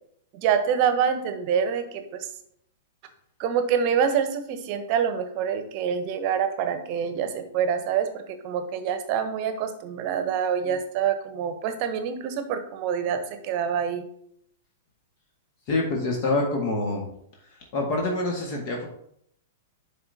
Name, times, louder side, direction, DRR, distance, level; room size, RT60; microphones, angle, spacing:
voice 1, 0.3-2.3 3.4-14.0, right 7 dB, 45° right, 8 dB, 0.9 m, -26 dB
voice 2, 15.7-17.1 17.7-18.8, left 2 dB, 45° left, 0 dB, 1.6 m, -26 dB
10.5 x 3.9 x 2.8 m, 0.71 s
figure-of-eight pair, 105°, 0 cm